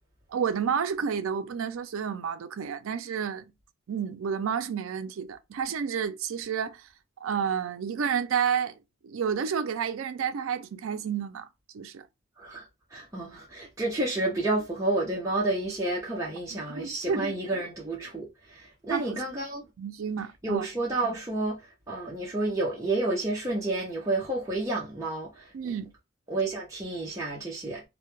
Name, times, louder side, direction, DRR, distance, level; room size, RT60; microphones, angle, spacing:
voice 1, 0.3-3.5 3.9-6.8 7.2-8.8 9.0-11.5 11.7-12.0 16.5-17.6 18.9-19.2 19.8-20.7 25.5-25.9, right 7 dB, 75° right, 0.4 m, -30 dB
voice 2, 12.9-19.7 20.4-25.7 26.3-27.8, right 2 dB, 15° right, 0.5 m, -30 dB
2.1 x 2.1 x 3.0 m
head